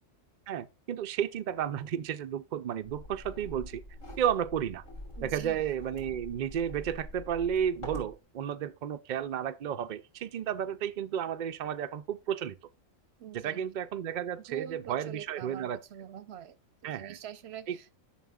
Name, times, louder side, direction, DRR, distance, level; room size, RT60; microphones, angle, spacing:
voice 1, 0.5-3.8 4.2-4.8 5.2-12.6 13.3-15.8 16.8-17.2 17.7-17.8, right 9 dB, 80° right, 0.4 m, -32 dB
sound 1, 2.8-8.2, left 1 dB, 65° left, 3.4 m, -45 dB
voice 2, 5.2-5.6 13.2-13.7 14.5-16.6 16.8-18.0, right 9 dB, 60° right, 0.7 m, -45 dB
11.0 x 6.0 x 2.3 m
omnidirectional pair, 1.4 m